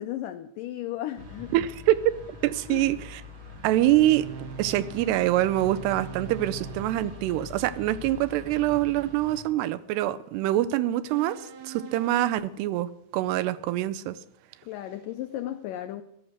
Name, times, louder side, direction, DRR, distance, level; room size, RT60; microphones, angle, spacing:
voice 1, 0.0-1.6 2.7-2.9 14.6-16.0, left 13 dB, 85° left, 9 dB, 1.9 m, -35 dB
sound 1, 1.2-9.4, left 2 dB, 45° right, 1.8 m, -44 dB
voice 2, 1.5-2.0 2.4-3.2 3.6-4.3 4.6-14.2, right 14 dB, 90° right, 16 dB, 2.8 m, -25 dB
sound 2, 3.7-7.2 11.1-12.3, right 6 dB, 65° right, 2.4 m, -42 dB
14.5 x 12.0 x 6.5 m, 0.79 s
omnidirectional pair, 4.7 m